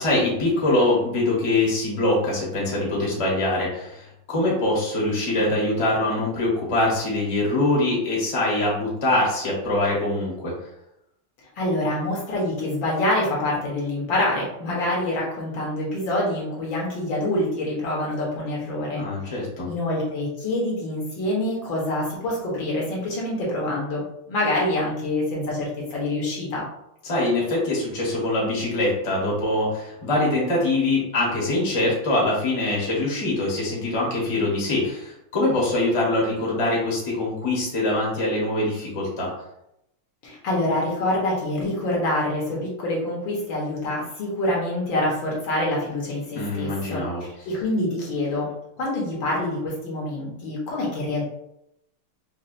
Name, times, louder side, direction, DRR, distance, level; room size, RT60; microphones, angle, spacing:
voice 1, 0.0-10.5 18.9-19.7 27.0-39.3 46.4-47.2, left 2 dB, 20° left, -5 dB, 0.8 m, -23 dB
voice 2, 11.6-19.0 19.7-26.6 40.2-47.0 47.5-48.5 48.8-51.2, left 1 dB, 65° left, -4 dB, 1.7 m, -26 dB
5.5 x 2.4 x 2.6 m, 0.81 s
omnidirectional pair, 2.4 m